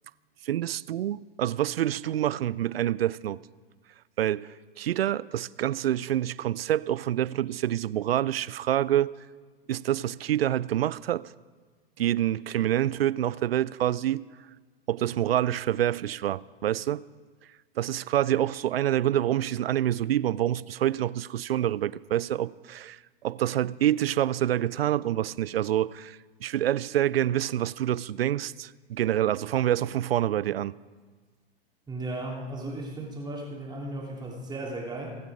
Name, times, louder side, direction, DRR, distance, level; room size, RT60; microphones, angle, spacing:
voice 1, 0.4-3.4 4.2-9.1 9.7-11.3 12.0-14.2 14.9-17.0 17.8-30.8, right 12 dB, 80° right, 0.4 m, -27 dB
voice 2, 31.9-35.2, right 2 dB, 15° right, 3.0 m, -35 dB
24.0 x 8.2 x 5.0 m
hypercardioid pair, 100°, 30 cm